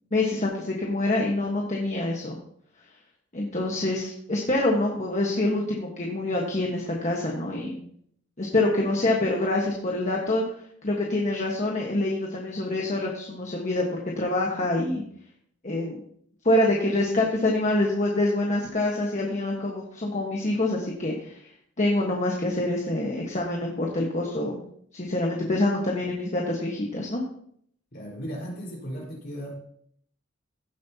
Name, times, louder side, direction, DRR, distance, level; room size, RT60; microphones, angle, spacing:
voice 1, 0.1-2.4 3.3-7.8 8.4-10.4 10.8-15.0 15.6-16.0 16.4-21.4 21.8-24.6 24.9-27.2, left 2 dB, 40° left, -1 dB, 1.4 m, -26 dB
voice 2, 27.9-29.6, equal, 55° left, -3 dB, 4.6 m, -36 dB
15.5 x 7.7 x 2.9 m, 0.66 s
head